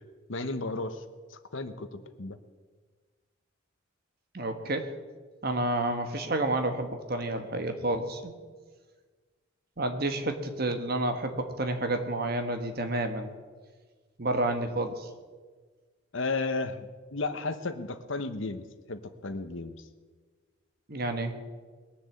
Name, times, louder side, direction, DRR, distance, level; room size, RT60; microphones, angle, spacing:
voice 1, 0.3-1.0 1.3-2.4 16.1-19.8, left 3 dB, 65° left, 10 dB, 1.0 m, -34 dB
voice 2, 4.3-4.9 5.4-8.3 9.8-13.3 14.2-15.1 20.9-21.3, right 2 dB, 45° right, 7 dB, 1.4 m, -30 dB
20.5 x 7.0 x 8.3 m, 1.4 s
head